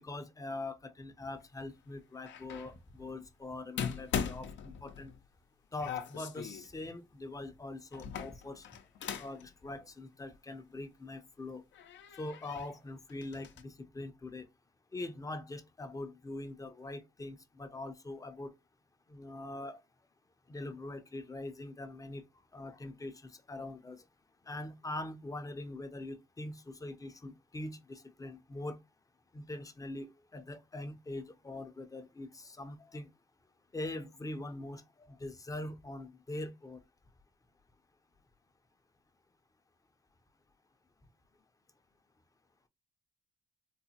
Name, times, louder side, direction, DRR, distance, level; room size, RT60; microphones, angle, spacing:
voice 1, 0.0-5.1 5.7-8.7 9.2-11.6 12.2-14.5 14.9-18.5 19.1-19.8 20.5-22.2 22.5-24.0 24.5-28.8 29.3-33.1 33.7-36.8, left 2 dB, 15° left, 0.5 m, -43 dB
sound 1, 2.2-2.7 3.8-5.2 5.8-6.7 7.9-9.4 9.8-9.9 11.1-11.2 11.7-12.7 13.1-13.6, left 7 dB, 70° left, 0.6 m, -40 dB
4.0 x 2.1 x 2.7 m
cardioid pair, 90°, 20 cm